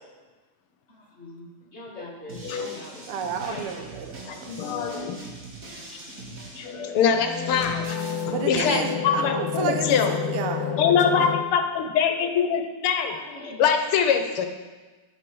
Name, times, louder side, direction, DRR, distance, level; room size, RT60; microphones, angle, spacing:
voice 1, 0.9-3.3 4.0-4.1 7.2-8.2 13.1-13.7 14.2-14.3, left 2 dB, 30° left, -3 dB, 2.1 m, -43 dB
sound 1, 2.3-8.2, right 2 dB, 40° right, 2.2 m, -42 dB
voice 2, 3.1-4.6 8.3-10.8, right 6 dB, 85° right, 5 dB, 1.9 m, -31 dB
voice 3, 4.3-5.2 6.6-10.2 10.8-13.2 13.6-14.5, left 7 dB, 85° left, 6 dB, 1.8 m, -24 dB
sound 2, 7.0-11.4, left 8 dB, 65° left, 1.9 m, -30 dB
11.0 x 6.6 x 6.1 m, 1.3 s
omnidirectional pair, 2.4 m